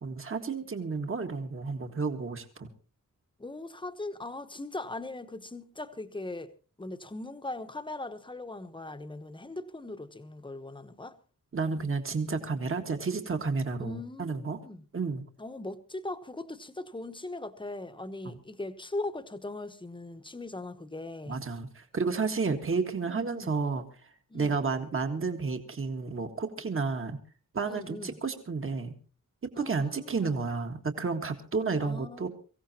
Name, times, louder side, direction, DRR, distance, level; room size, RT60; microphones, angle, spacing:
voice 1, 0.0-2.7 11.5-14.6 14.9-15.2 18.3-18.4 21.3-23.8 24.3-27.2 27.5-28.9 29.6-32.3, right 4 dB, 40° right, 1.8 m, -31 dB
voice 2, 3.4-6.5 6.8-11.2 13.8-14.9 15.4-21.4 23.1-23.6 24.3-24.6 27.7-28.2 29.5-30.4 31.8-32.3, left 2 dB, 15° left, 1.1 m, -40 dB
23.5 x 16.0 x 2.9 m
wide cardioid pair, 145°, 32 cm